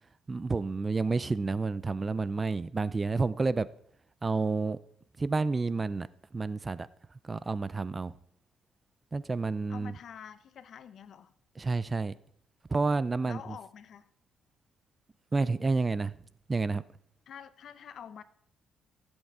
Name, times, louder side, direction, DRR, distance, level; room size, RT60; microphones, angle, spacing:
voice 1, 0.3-3.7 4.2-4.8 5.2-6.1 6.3-6.9 7.2-8.1 9.1-9.9 11.6-12.1 12.7-13.4 15.3-16.2 16.5-16.8, right 3 dB, 25° right, 0.3 m, -29 dB
voice 2, 9.7-11.3 13.2-14.1 17.3-18.2, left 8 dB, 60° left, 0.7 m, -47 dB
15.0 x 8.1 x 3.6 m
cardioid pair, 120°, 0 cm